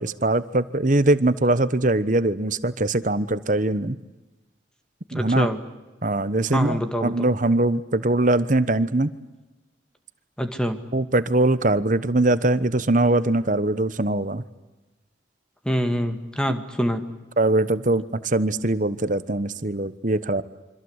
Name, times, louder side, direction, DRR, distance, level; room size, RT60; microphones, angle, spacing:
voice 1, 0.0-4.0 5.1-5.5 6.0-9.1 10.9-14.4 17.4-20.4, right 2 dB, 40° right, 14 dB, 1.1 m, -22 dB
voice 2, 5.1-5.6 6.5-7.3 10.4-10.8 15.6-17.1, equal, 5° left, 6 dB, 2.1 m, -25 dB
27.0 x 25.0 x 8.2 m, 1.1 s
head